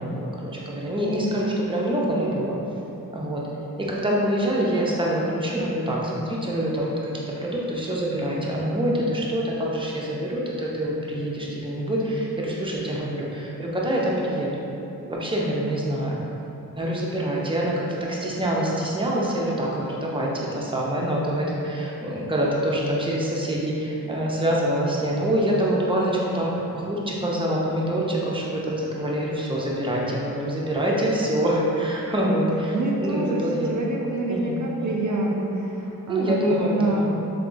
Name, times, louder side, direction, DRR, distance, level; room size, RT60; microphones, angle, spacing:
voice 1, 0.0-2.6 3.1-3.4 3.8-6.9 7.3-14.7 15.1-16.2 16.8-32.7 33.0-33.7 34.3-34.5 34.8-34.9 36.1-37.1, right 1 dB, 15° right, -4 dB, 0.6 m, -25 dB
voice 2, 32.7-37.2, right 1 dB, 55° right, -2 dB, 0.4 m, -26 dB
3.4 x 3.0 x 2.5 m, 3.0 s
cardioid pair, 50°, 36 cm